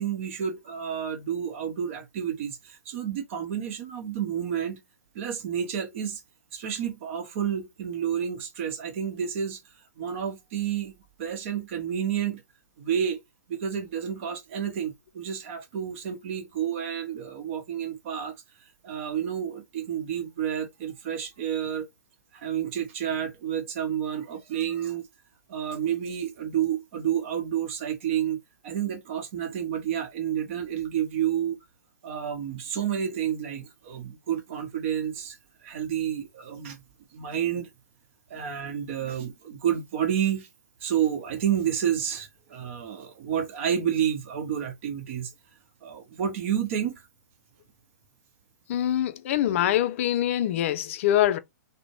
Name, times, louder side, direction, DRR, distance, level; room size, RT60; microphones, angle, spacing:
voice 1, 0.0-4.8 5.1-6.2 6.5-9.6 10.0-12.4 12.8-13.2 13.5-18.3 18.8-21.9 22.3-25.1 25.5-28.4 28.6-31.6 32.0-35.4 35.6-36.8 37.1-37.7 38.3-40.5 40.8-45.3 45.8-47.1, right 9 dB, 45° right, 0.8 m, -30 dB
voice 2, 48.7-51.4, left 12 dB, 45° left, 0.3 m, -24 dB
2.5 x 2.1 x 2.9 m
hypercardioid pair, 125°, 9 cm